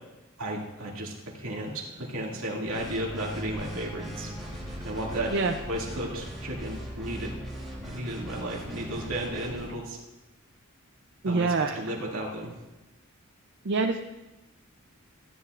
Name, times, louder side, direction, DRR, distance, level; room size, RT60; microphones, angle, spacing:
voice 1, 0.4-4.3 4.8-5.3 5.7-7.3 7.8-10.0 11.2-12.5, right 1 dB, 75° right, -2 dB, 2.3 m, -34 dB
sound 1, 1.4-7.0, equal, 30° right, 2.6 m, -48 dB
sound 2, 2.7-9.7, equal, ahead, 3.0 m, -39 dB
voice 2, 11.2-11.8 13.6-14.0, right 3 dB, 55° right, 4 dB, 0.5 m, -25 dB
16.0 x 10.5 x 2.5 m, 1.0 s
head